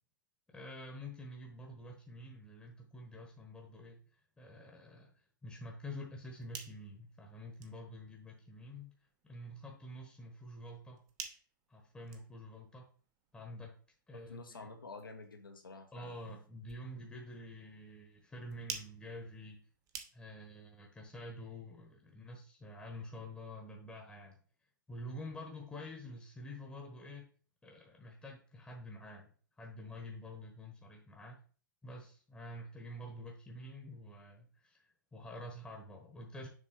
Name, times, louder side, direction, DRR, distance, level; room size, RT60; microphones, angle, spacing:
voice 1, 0.5-5.1 5.4-8.9 9.2-11.0 11.7-12.9 13.3-13.7 14.1-14.7 15.9-19.6 20.1-24.4 24.9-27.3 27.6-29.3 29.6-31.4 31.8-36.5, left 1 dB, 5° left, 1 dB, 1.2 m, -48 dB
sound 1, 6.3-20.6, right 7 dB, 30° right, 1.0 m, -53 dB
voice 2, 14.3-16.2, left 3 dB, 85° left, 4 dB, 1.4 m, -49 dB
6.6 x 3.4 x 4.5 m, 0.41 s
figure-of-eight pair, 115°, 11 cm